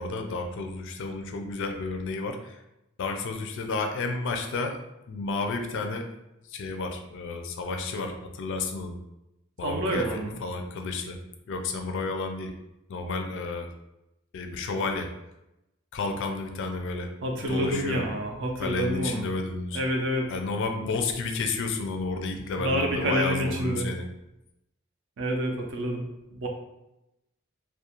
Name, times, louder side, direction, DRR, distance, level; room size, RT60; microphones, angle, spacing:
voice 1, 0.0-2.6 3.0-4.8 5.1-6.1 6.5-8.9 9.6-11.2 11.5-12.5 12.9-13.7 14.3-15.1 15.9-17.1 17.4-18.0 18.6-19.8 20.3-24.0, left 3 dB, 60° left, 4 dB, 0.4 m, -31 dB
voice 2, 9.6-10.4 17.2-19.3 19.7-20.3 20.8-20.9 22.6-23.9 25.2-26.0 26.3-26.5, right 1 dB, 60° right, 2 dB, 0.5 m, -28 dB
2.4 x 2.2 x 2.9 m, 0.90 s
head